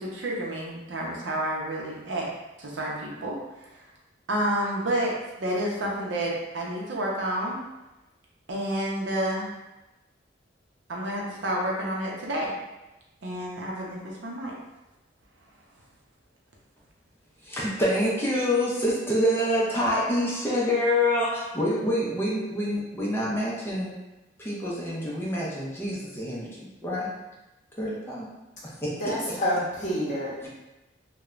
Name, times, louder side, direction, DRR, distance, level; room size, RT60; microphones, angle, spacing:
voice 1, 0.0-2.3 2.6-3.4 4.3-7.6 8.5-9.5 10.9-12.5 13.2-14.5, right 1 dB, 70° right, -2 dB, 0.6 m, -29 dB
voice 2, 17.4-24.0 24.4-27.1 27.8-28.3 28.6-29.4 30.4-30.5, left 1 dB, 10° left, -6 dB, 0.4 m, -27 dB
voice 3, 28.9-30.5, equal, 40° left, -7 dB, 0.8 m, -28 dB
3.0 x 2.1 x 2.4 m, 1.0 s
head